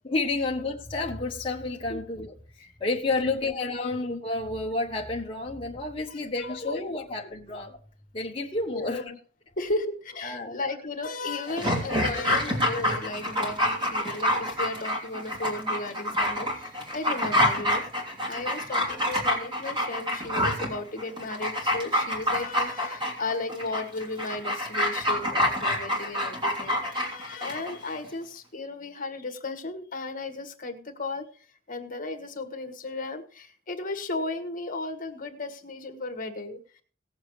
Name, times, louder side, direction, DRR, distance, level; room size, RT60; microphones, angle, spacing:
voice 1, 0.0-2.3 2.8-7.8 8.1-9.0 10.2-10.6, left 2 dB, 30° left, 1.2 m, -30 dB
voice 2, 3.2-4.1 6.1-6.8 8.7-9.2 9.6-18.0 18.3-36.8, left 2 dB, 50° left, 1.7 m, -35 dB
Dog, 11.5-27.7 28.0-28.1, left 1 dB, 25° right, 3.2 m, -27 dB
18.5 x 7.2 x 3.2 m
head